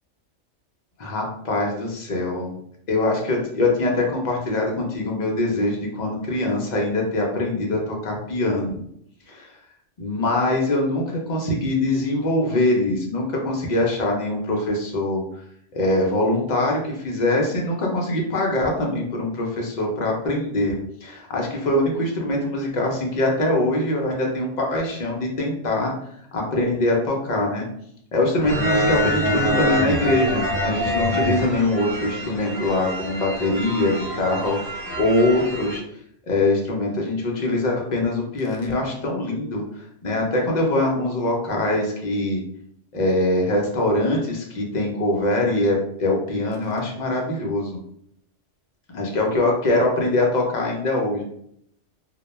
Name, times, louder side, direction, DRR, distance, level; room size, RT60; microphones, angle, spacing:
voice 1, 1.0-2.5 2.9-8.8 9.3-9.5 10.0-15.2 15.7-25.9 26.3-27.7 28.1-35.8 36.3-42.4 42.9-47.8 48.9-51.2, left 2 dB, 55° left, -1 dB, 0.5 m, -23 dB
sound 1, 28.4-35.8, equal, 30° right, 0.9 m, -25 dB
2.2 x 2.1 x 3.0 m, 0.70 s
omnidirectional pair, 1.3 m